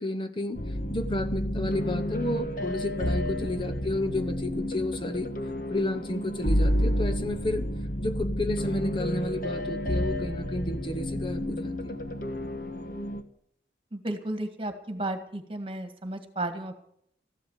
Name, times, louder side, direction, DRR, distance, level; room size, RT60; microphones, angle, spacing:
voice 1, 0.0-5.3 5.7-7.7 8.0-12.0, left 1 dB, 25° left, 6 dB, 0.8 m, -31 dB
sound 1, 0.5-13.2, equal, 50° left, 1.4 m, -30 dB
voice 2, 13.9-16.8, right 1 dB, 30° right, 7 dB, 1.8 m, -33 dB
14.5 x 11.5 x 7.3 m, 0.69 s
head